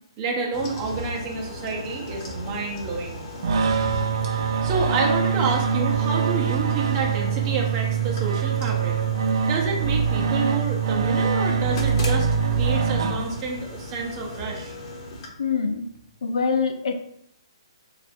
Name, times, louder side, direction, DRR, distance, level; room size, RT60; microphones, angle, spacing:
voice 1, 0.2-3.2 4.3-9.0 9.4-14.7, right 4 dB, 25° right, 0 dB, 0.8 m, -29 dB
sound 1, 0.5-15.3, left 1 dB, 35° left, 0.9 m, -37 dB
sound 2, 3.4-13.7, right 6 dB, 55° right, 0.4 m, -23 dB
voice 2, 15.4-15.8 16.2-17.0, left 5 dB, 70° left, 6 dB, 0.6 m, -24 dB
3.3 x 2.5 x 4.2 m, 0.73 s
hypercardioid pair, 160°, 3 cm